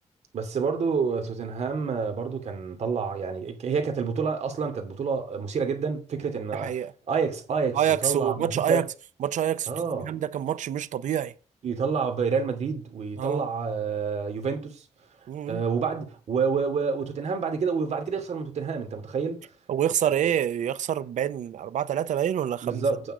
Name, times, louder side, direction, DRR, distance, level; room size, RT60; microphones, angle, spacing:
voice 1, 0.3-6.8 7.1-8.8 9.7-10.1 11.6-14.8 15.5-19.5 20.2-20.3 22.6-23.1, right 5 dB, 65° right, 2.6 m, -28 dB
voice 2, 6.5-6.9 7.7-8.9 9.2-9.7 10.0-11.3 13.2-13.5 15.3-15.6 19.7-22.8, right 10 dB, 85° right, 0.7 m, -27 dB
9.2 x 6.8 x 4.9 m
cardioid pair, 115°, 13 cm